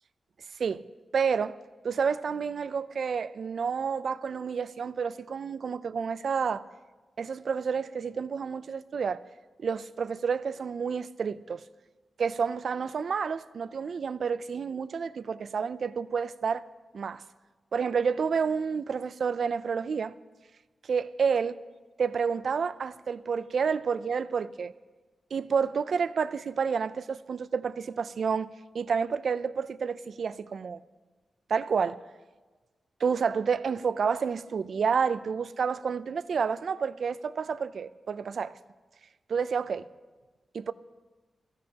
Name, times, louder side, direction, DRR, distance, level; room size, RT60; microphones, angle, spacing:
voice 1, 1.1-1.6 1.8-6.6 7.2-9.2 9.6-11.6 12.2-16.6 16.9-17.2 17.7-20.2 20.8-21.6 22.0-24.7 25.3-30.8 31.5-32.0 33.0-38.6 39.3-39.9 40.5-40.7, right 6 dB, 60° right, 0.4 m, -29 dB
22.5 x 15.5 x 2.9 m
wide cardioid pair, 150°, 0 cm